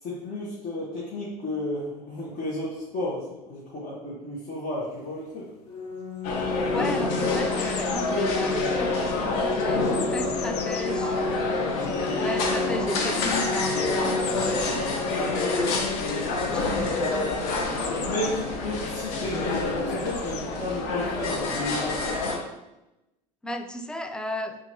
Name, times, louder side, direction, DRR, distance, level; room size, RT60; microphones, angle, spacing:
voice 1, 0.0-5.5 6.2-6.7 11.2-12.2 14.9-15.1 16.3-16.9 18.0-22.0, left 1 dB, 40° left, -5 dB, 1.3 m, -33 dB
sound 1, 5.2-5.3 5.9-6.5 6.8-12.1 13.0-14.8 17.8-18.8 19.9-20.5 21.4-21.5, left 7 dB, 80° left, 0.5 m, -38 dB
Organ, 5.7-16.7, left 3 dB, 20° left, 1.1 m, -32 dB
sound 2, 6.2-22.4, left 3 dB, 60° left, 0.9 m, -28 dB
voice 2, 6.7-11.3 12.0-15.7 16.5-17.3 23.4-24.6, left 1 dB, 5° left, 6 dB, 0.4 m, -35 dB
5.7 x 2.8 x 2.8 m, 0.96 s
hypercardioid pair, 75°, 20 cm